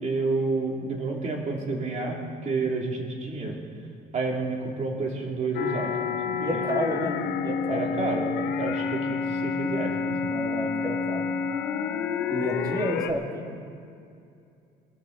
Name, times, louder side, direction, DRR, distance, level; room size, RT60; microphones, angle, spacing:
voice 1, 0.0-3.6 4.1-6.0 6.2-6.6 7.7-10.3, right 3 dB, 45° right, 0 dB, 2.7 m, -30 dB
sound 1, 5.5-13.1, left 6 dB, 85° left, 1.1 m, -29 dB
voice 2, 6.4-7.2 7.4-7.9 10.3-11.3 12.3-13.4, right 1 dB, 20° right, 1 dB, 2.4 m, -30 dB
24.0 x 12.5 x 3.9 m, 2.5 s
cardioid pair, 110°, 17 cm